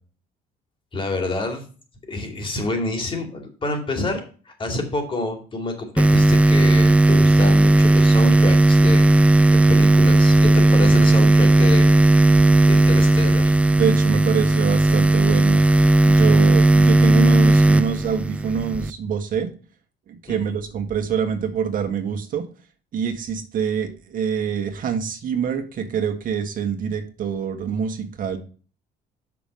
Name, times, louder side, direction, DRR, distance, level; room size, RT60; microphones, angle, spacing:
voice 1, 0.9-1.7 2.1-9.1 9.5-12.2 12.6-13.6 20.3-20.6, left 2 dB, 30° left, 4 dB, 2.5 m, -28 dB
sound 1, 6.0-18.9, right 2 dB, 5° right, 0.3 m, -15 dB
voice 2, 13.7-15.6 16.0-19.5 20.1-22.4 22.9-28.4, right 7 dB, 55° right, 5 dB, 1.5 m, -25 dB
7.0 x 6.0 x 5.3 m, 0.38 s
cardioid pair, 110°, 17 cm